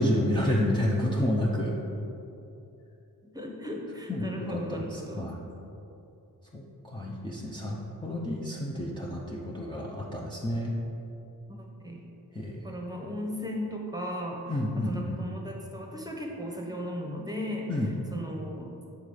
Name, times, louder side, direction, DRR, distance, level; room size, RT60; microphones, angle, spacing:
voice 1, 0.0-1.8 4.1-5.4 6.5-10.7 12.3-12.6 14.5-15.2 17.7-17.9, left 1 dB, 15° left, -4 dB, 0.6 m, -30 dB
voice 2, 3.3-5.3 11.5-12.1 12.6-14.6 14.8-17.7 18.1-18.8, equal, 10° right, 0 dB, 0.9 m, -36 dB
7.1 x 3.9 x 6.5 m, 2.8 s
wide cardioid pair, 115°, 37 cm